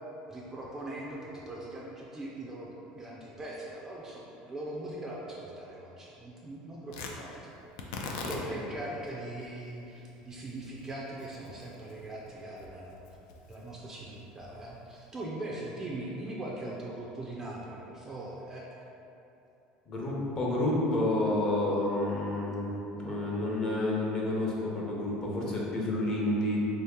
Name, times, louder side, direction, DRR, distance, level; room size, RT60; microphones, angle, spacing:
voice 1, 0.3-7.5 8.0-13.0 13.5-18.7, right 1 dB, 15° right, -4 dB, 0.4 m, -41 dB
Tearing, 6.9-15.2, left 3 dB, 90° left, 0.4 m, -44 dB
voice 2, 8.2-8.6 19.9-22.7 23.0-26.6, left 1 dB, 30° left, -4 dB, 0.7 m, -30 dB
3.6 x 2.8 x 3.5 m, 2.9 s
cardioid pair, 150°, 3 cm